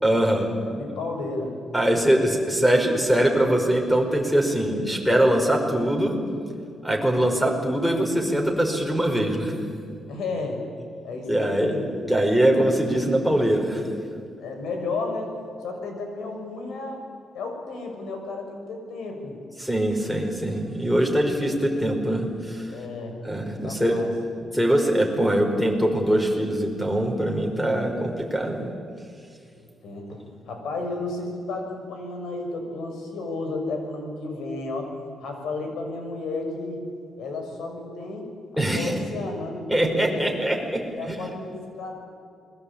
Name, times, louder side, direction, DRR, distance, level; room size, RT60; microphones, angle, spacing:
voice 1, 0.0-0.5 1.7-6.1 6.8-9.5 11.3-11.8 12.1-13.9 19.6-22.7 23.2-24.0 24.5-28.7 38.6-38.9 39.7-40.8 41.1-41.2, right 1 dB, ahead, 3 dB, 5.0 m, -22 dB
voice 2, 0.6-1.6 10.1-10.6 11.0-12.0 14.4-15.4 15.6-17.0 17.3-19.3 22.7-24.1 29.6-34.9 35.2-36.8 37.2-38.3 38.5-40.4 41.0-42.0, left 3 dB, 85° left, 4 dB, 6.5 m, -33 dB
28.0 x 21.5 x 8.8 m, 2.4 s
cardioid pair, 110°, 0 cm